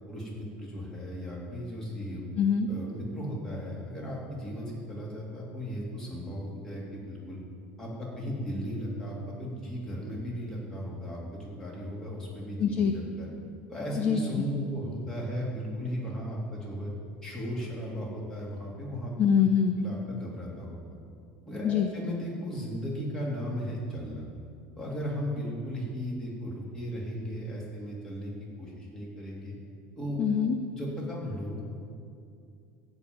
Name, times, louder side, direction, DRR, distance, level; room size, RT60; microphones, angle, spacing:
voice 1, 0.1-2.2 2.7-7.4 7.8-13.3 13.7-16.9 17.2-19.1 19.8-20.8 21.5-24.2 24.8-28.3 28.6-29.5 30.0-30.2 30.7-31.6, equal, 15° left, -4 dB, 2.9 m, -36 dB
voice 2, 2.4-2.7 12.6-12.9 14.0-14.2 19.2-19.8 21.6-21.9 30.2-30.6, left 7 dB, 35° left, 7 dB, 0.6 m, -24 dB
14.0 x 5.4 x 9.0 m, 2.4 s
cardioid pair, 155°, 4 cm